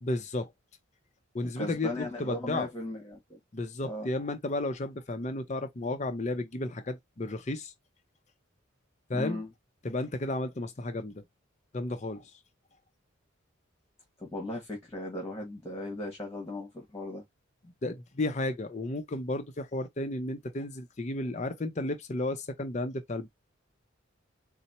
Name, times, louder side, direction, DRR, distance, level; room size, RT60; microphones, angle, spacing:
voice 1, 0.0-0.5 1.3-2.7 3.5-7.7 9.1-9.4 9.8-11.2 11.7-12.3 17.8-23.3, left 2 dB, 35° left, 0.5 m, -33 dB
voice 2, 1.4-3.4 3.8-4.1 9.1-9.5 14.2-17.2, left 1 dB, 10° left, 1.4 m, -37 dB
4.1 x 2.0 x 4.1 m
head